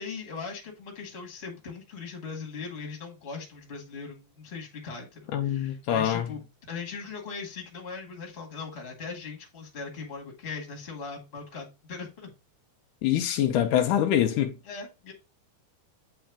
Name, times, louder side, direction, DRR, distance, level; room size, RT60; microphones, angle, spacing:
voice 1, 0.0-12.3 14.6-15.1, left 4 dB, 25° left, 1.6 m, -39 dB
voice 2, 5.3-6.3 13.0-14.6, left 10 dB, 85° left, 2.2 m, -25 dB
8.8 x 3.4 x 3.5 m
omnidirectional pair, 3.7 m